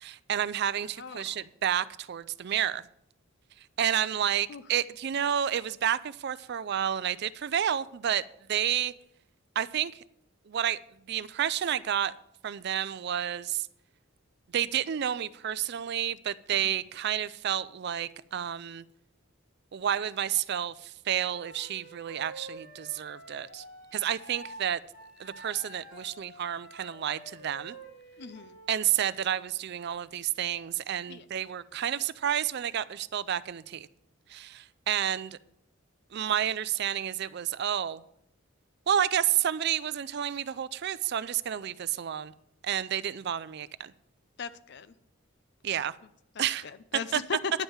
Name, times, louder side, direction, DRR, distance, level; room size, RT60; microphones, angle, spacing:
voice 1, 0.0-2.8 3.8-8.2 8.5-8.9 9.6-10.0 10.5-10.8 11.1-12.1 12.4-13.7 14.5-18.8 19.7-23.6 23.9-24.8 25.2-27.7 28.7-33.9 34.3-35.4 36.1-38.0 38.9-42.3 42.6-43.9 45.6-45.9 46.4-46.7 47.1-47.2, right 10 dB, 55° right, 0.4 m, -30 dB
voice 2, 1.0-1.4 4.5-4.6 16.6-16.7 28.2-28.6 31.1-31.2 44.4-44.9 46.4-47.5, left 5 dB, 55° left, 0.5 m, -38 dB
Wind instrument woodwind instrument, 21.1-24.6 24.9-28.7, right 1 dB, 75° left, 5.1 m, -48 dB
10.0 x 5.4 x 7.1 m
head